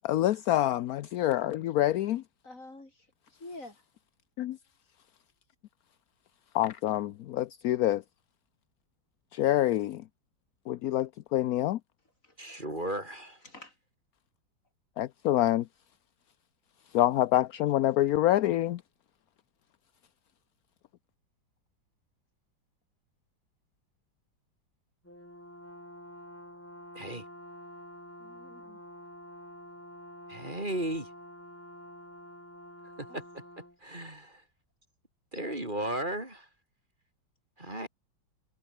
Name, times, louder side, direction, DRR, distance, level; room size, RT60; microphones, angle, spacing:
voice 1, 0.0-2.2 4.4-4.6 6.5-8.0 9.3-10.0 10.7-11.8 15.0-15.6 16.9-18.8, left 14 dB, 65° left, 0.9 m, -26 dB
voice 2, 2.4-3.8 12.2-12.4 13.4-13.8 17.8-17.9 28.2-28.8 33.1-33.2, left 2 dB, 40° left, 5.3 m, -48 dB
voice 3, 12.4-13.4 26.9-27.2 30.3-31.1 33.0-33.2 33.8-34.4 35.3-36.5 37.6-37.9, right 1 dB, 25° right, 4.8 m, -35 dB
Brass instrument, 25.0-33.8, equal, 5° left, 5.1 m, -48 dB
omnidirectional pair, 2.1 m